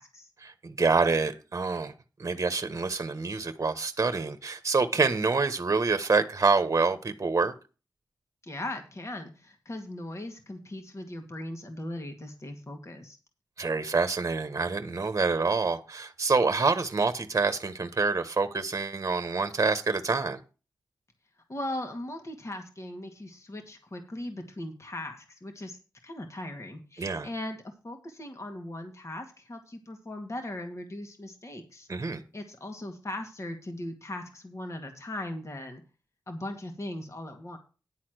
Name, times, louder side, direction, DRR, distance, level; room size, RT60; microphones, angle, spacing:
voice 1, 0.4-1.9 2.2-7.5 13.6-20.4 27.0-27.3 31.9-32.2, right 4 dB, 40° right, 1.2 m, -27 dB
voice 2, 8.4-13.2 21.5-31.9 32.3-35.8 36.3-37.6, left 1 dB, 40° left, 2.0 m, -39 dB
10.5 x 4.2 x 7.9 m
cardioid pair, 50°, 8 cm